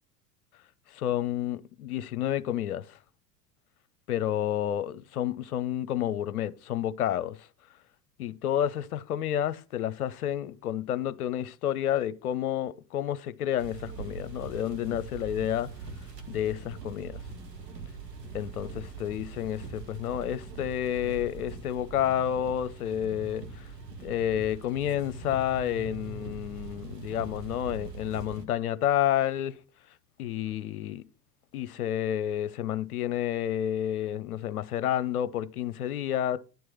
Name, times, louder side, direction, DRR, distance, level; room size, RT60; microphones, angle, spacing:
voice 1, 0.9-3.0 4.1-7.5 8.2-15.7 16.3-17.2 18.3-23.7 24.0-29.6 30.2-31.0 31.5-36.4, left 11 dB, 65° left, 0.8 m, -30 dB
Heavy Rain in the car, 13.6-28.4, right 4 dB, 80° right, 1.6 m, -42 dB
10.5 x 4.7 x 5.9 m
figure-of-eight pair, 80°, 48 cm